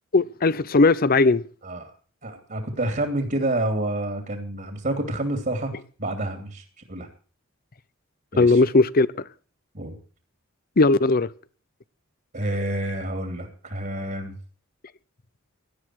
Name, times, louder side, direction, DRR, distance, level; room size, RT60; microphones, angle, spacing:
voice 1, 0.1-1.4 8.4-9.1 10.8-11.3, left 3 dB, 45° left, 0.7 m, -18 dB
voice 2, 2.2-6.6 6.9-7.1 8.3-8.6 9.7-10.0 12.3-14.4, right 1 dB, 45° right, 2.9 m, -28 dB
17.5 x 12.5 x 4.6 m
head